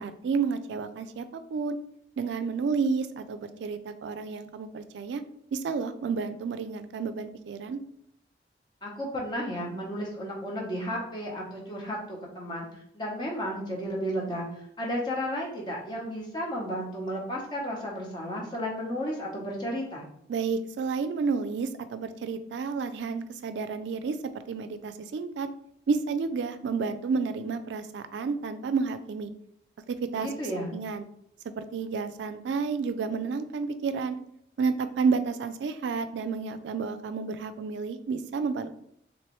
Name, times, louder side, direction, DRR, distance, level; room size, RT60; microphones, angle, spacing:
voice 1, 0.0-1.8 2.2-5.2 5.5-7.8 20.3-24.2 24.5-25.5 25.9-29.3 29.9-30.3 30.7-31.0 31.6-34.2 34.6-38.8, right 5 dB, 80° right, 10 dB, 0.3 m, -30 dB
voice 2, 8.8-20.1 30.1-30.7, equal, 25° left, -2 dB, 0.8 m, -33 dB
3.2 x 3.0 x 3.0 m, 0.74 s
head